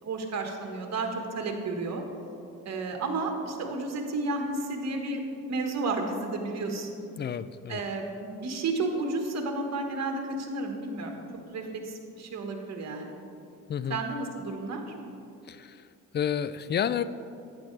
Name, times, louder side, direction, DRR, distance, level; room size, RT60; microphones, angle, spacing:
voice 1, 0.0-2.0 2.6-6.9 7.7-11.2 11.5-13.1 13.9-14.8, right 3 dB, 50° right, 3 dB, 1.5 m, -32 dB
voice 2, 7.2-7.8 13.7-14.0 15.5-15.8 16.1-17.0, left 8 dB, 35° left, 14 dB, 0.4 m, -30 dB
11.5 x 9.3 x 3.3 m, 2.6 s
cardioid pair, 100°, 33 cm